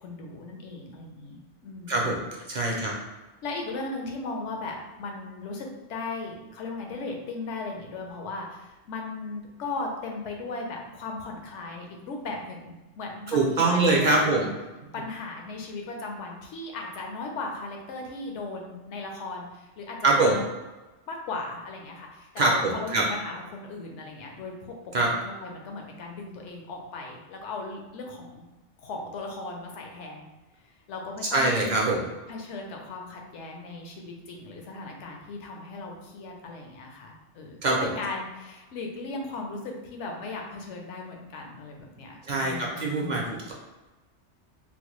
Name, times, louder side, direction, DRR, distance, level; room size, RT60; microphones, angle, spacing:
voice 1, 0.0-2.1 2.7-3.0 3.4-14.5 14.9-20.4 21.1-24.7 25.2-28.4 28.8-30.3 30.9-31.6 32.3-43.3, left 3 dB, 80° left, 1 dB, 1.0 m, -37 dB
voice 2, 1.9-2.2 2.5-2.9 13.3-14.4 20.0-20.4 22.4-23.0 24.9-25.1 31.3-32.1 37.6-37.9 42.2-43.5, right 2 dB, 55° right, -2 dB, 0.5 m, -23 dB
3.9 x 2.2 x 3.0 m, 1.1 s
omnidirectional pair, 1.2 m